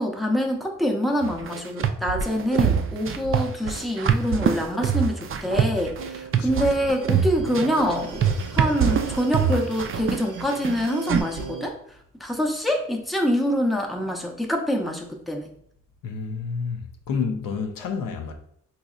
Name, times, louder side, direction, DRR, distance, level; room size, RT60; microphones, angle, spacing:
voice 1, 0.0-8.2 8.5-11.8 12.2-15.5, equal, ahead, 0.6 m, -25 dB
sound 1, 1.2-11.2, right 7 dB, 40° right, 0.4 m, -24 dB
sound 2, 5.7-11.7, right 5 dB, 70° right, 0.7 m, -37 dB
voice 2, 6.3-6.8 16.0-18.3, left 5 dB, 85° left, 0.6 m, -30 dB
4.0 x 2.7 x 2.4 m
cardioid pair, 70°, 33 cm